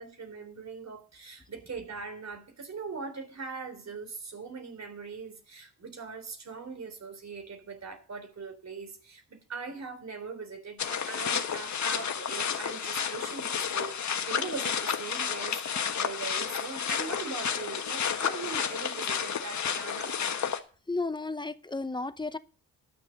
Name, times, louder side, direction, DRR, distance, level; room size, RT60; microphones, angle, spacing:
voice 1, 0.0-20.2, right 5 dB, 50° right, 3.7 m, -41 dB
sound 1, 10.8-20.6, left 7 dB, 55° left, 1.4 m, -31 dB
voice 2, 20.9-22.4, left 3 dB, 15° left, 0.8 m, -33 dB
12.0 x 7.1 x 6.5 m
cardioid pair, 85°, 33 cm